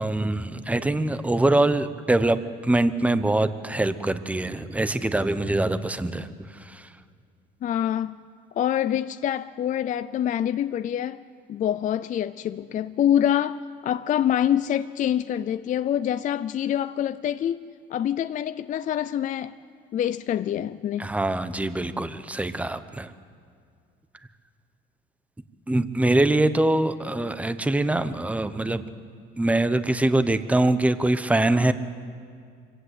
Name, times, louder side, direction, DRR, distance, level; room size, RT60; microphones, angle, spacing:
voice 1, 0.0-6.9 21.0-23.1 25.7-28.8 29.4-31.7, right 2 dB, 5° right, 0.9 m, -23 dB
voice 2, 7.6-8.2 8.6-11.2 11.5-17.6 17.9-19.5 19.9-21.1, left 10 dB, 40° left, 0.5 m, -26 dB
25.0 x 16.0 x 8.2 m
cardioid pair, 120°, 21 cm